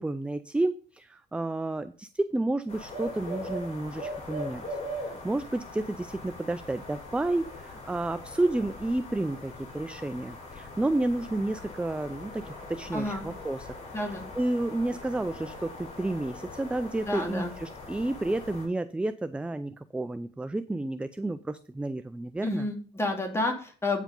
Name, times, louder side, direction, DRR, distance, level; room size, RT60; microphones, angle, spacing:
voice 1, 0.0-13.7 13.9-22.7, right 2 dB, 5° right, 12 dB, 0.4 m, -31 dB
sound 1, 2.7-18.7, left 1 dB, 40° left, 4.4 m, -41 dB
voice 2, 12.9-13.2 13.9-14.2 17.1-17.5 22.4-24.0, left 2 dB, 15° left, 2 dB, 2.4 m, -30 dB
8.9 x 4.9 x 5.4 m, 0.41 s
cardioid pair, 110°, 17 cm